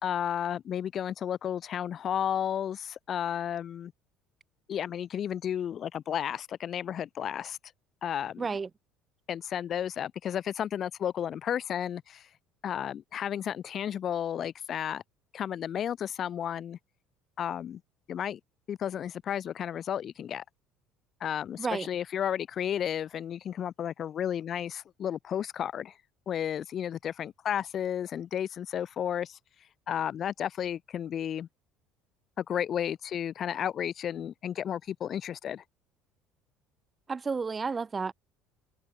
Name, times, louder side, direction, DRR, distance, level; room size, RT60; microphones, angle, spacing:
voice 1, 0.0-3.9 4.7-7.6 8.0-8.5 9.3-12.3 12.6-15.0 15.3-16.8 17.4-17.8 18.1-18.4 18.7-20.4 21.2-25.9 26.3-29.4 29.9-31.5 32.4-35.6, left 9 dB, 45° left, 3.0 m, -32 dB
voice 2, 8.4-8.7 21.6-21.9 37.1-38.1, right 5 dB, 25° right, 3.9 m, -31 dB
supercardioid pair, 110°, 0 cm